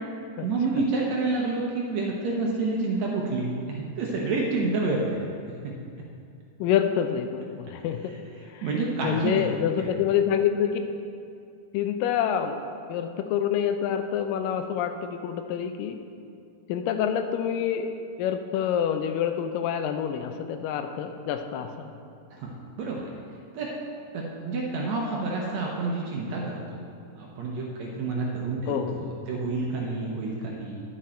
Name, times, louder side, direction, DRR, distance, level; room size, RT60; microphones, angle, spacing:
voice 1, 0.4-5.2 5.6-5.7 8.1-9.5 9.7-9.9 22.3-23.1 23.5-23.7 24.1-26.9 27.1-30.8, right 3 dB, 70° right, -2 dB, 1.8 m, -29 dB
voice 2, 6.6-8.0 8.5-8.6 9.0-10.8 11.7-12.6 12.9-16.0 16.7-17.9 18.2-21.9 28.7-29.0, left 9 dB, 80° left, 7 dB, 2.2 m, -27 dB
11.5 x 7.4 x 4.3 m, 2.5 s
omnidirectional pair, 4.0 m